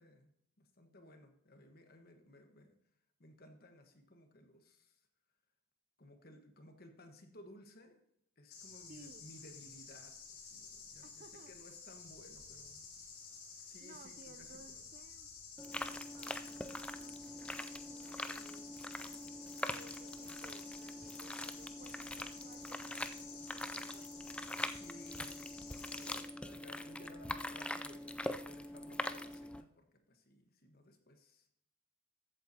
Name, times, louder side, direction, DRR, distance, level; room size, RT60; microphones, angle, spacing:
voice 1, 0.0-2.8 3.2-5.0 6.0-8.0 8.4-12.9 13.6-14.8 24.5-31.5, left 1 dB, 45° left, 5 dB, 1.3 m, -59 dB
sound 1, 8.5-26.2, left 5 dB, 80° left, 3.1 m, -52 dB
voice 2, 8.9-9.3 11.0-11.5 13.8-15.3 15.7-18.8 19.6-24.2, right 3 dB, 40° right, 12 dB, 0.6 m, -60 dB
sound 2, 15.6-29.6, left 1 dB, 5° left, 0.3 m, -43 dB
14.5 x 8.0 x 2.8 m, 0.73 s
head